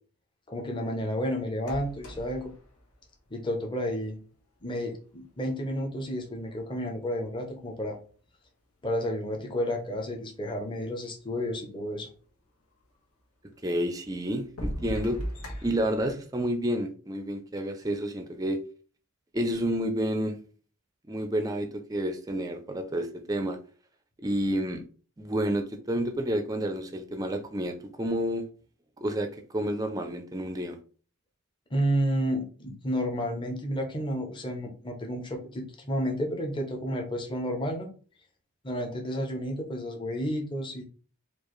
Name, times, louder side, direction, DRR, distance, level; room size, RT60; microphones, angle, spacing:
voice 1, 0.5-2.5 3.3-4.2 4.6-8.0 8.8-12.1 31.7-37.9 38.6-40.8, equal, 20° left, 2 dB, 0.7 m, -31 dB
sound 1, 1.6-3.9 4.9-5.0 5.6-6.8 7.4-8.3 9.1-9.2 9.3-9.4 10.1-10.2 10.4-11.2 12.8-12.9 13.5-13.6 14.3-16.1, equal, 90° left, 1.2 m, -39 dB
voice 2, 13.6-15.2 15.6-18.6 19.3-20.3 21.1-23.6 24.2-24.8 25.2-28.4 29.0-30.8, right 1 dB, 15° right, 6 dB, 0.4 m, -30 dB
4.5 x 2.5 x 3.0 m, 0.40 s
head